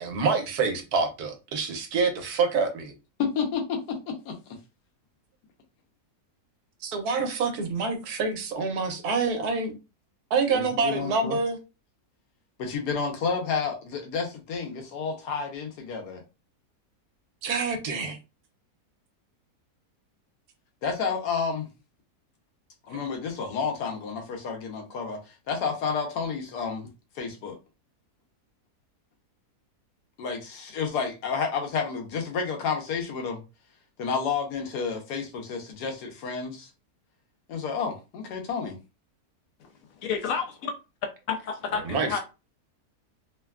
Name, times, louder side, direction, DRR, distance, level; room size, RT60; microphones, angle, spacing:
voice 1, 0.0-2.9 6.8-9.7 10.3-11.6 17.4-18.2 41.8-42.2, right 4 dB, 75° right, 1.2 m, -27 dB
voice 2, 3.2-4.4 10.5-11.4 12.6-16.2 20.8-21.7 22.9-25.2 25.5-26.9 27.2-27.5 30.2-33.4 34.0-36.7 37.5-38.8, left 5 dB, 85° left, 1.3 m, -30 dB
voice 3, 40.0-40.7 41.3-42.2, left 6 dB, 70° left, 0.9 m, -30 dB
3.2 x 2.2 x 2.3 m
omnidirectional pair, 1.7 m